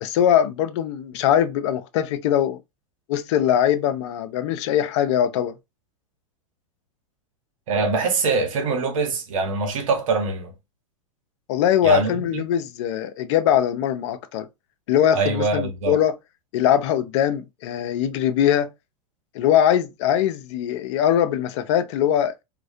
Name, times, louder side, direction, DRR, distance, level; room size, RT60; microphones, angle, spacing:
voice 1, 0.0-2.6 3.1-5.5 11.5-14.5 14.9-16.2 16.5-18.7 19.3-22.3, left 10 dB, 60° left, 0.4 m, -21 dB
voice 2, 7.7-10.5 11.8-12.4 15.1-16.0, right 4 dB, 70° right, 0.9 m, -23 dB
2.3 x 2.1 x 2.5 m
hypercardioid pair, 105°, 17 cm